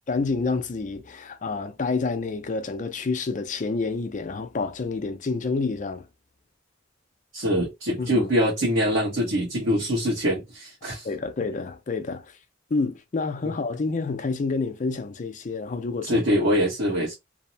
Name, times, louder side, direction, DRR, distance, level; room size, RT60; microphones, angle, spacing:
voice 1, 0.1-6.1 8.0-8.3 11.0-12.3 12.7-16.2, left 4 dB, 40° left, 0.4 m, -28 dB
voice 2, 7.3-11.1 16.0-17.1, equal, 85° right, 1.1 m, -24 dB
2.7 x 2.0 x 2.7 m
head